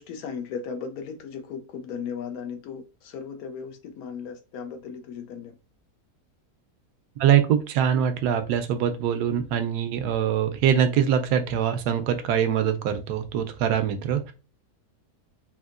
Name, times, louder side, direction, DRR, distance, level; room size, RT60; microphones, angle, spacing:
voice 1, 0.0-5.6 9.6-9.7, left 6 dB, 75° left, 1.0 m, -36 dB
voice 2, 7.2-14.3, right 9 dB, 85° right, 1.1 m, -23 dB
3.5 x 2.7 x 2.4 m
omnidirectional pair, 1.7 m